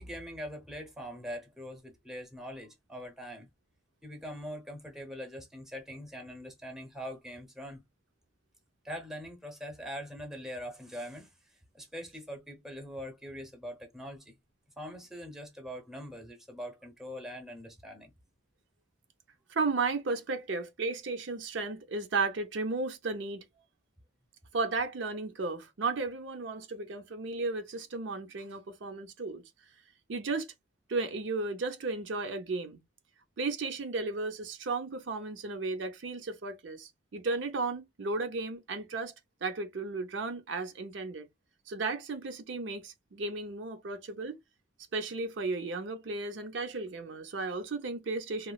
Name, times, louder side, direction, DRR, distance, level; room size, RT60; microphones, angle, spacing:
voice 1, 0.0-3.5 4.0-7.8 8.8-11.3 11.7-14.3 14.8-18.1, equal, ahead, 0.7 m, -42 dB
voice 2, 19.5-23.4 24.5-29.4 30.1-30.5 30.9-32.8 33.4-39.1 39.4-41.3 41.7-44.3 44.9-48.5, right 3 dB, 65° right, 0.6 m, -34 dB
3.0 x 2.3 x 2.3 m
head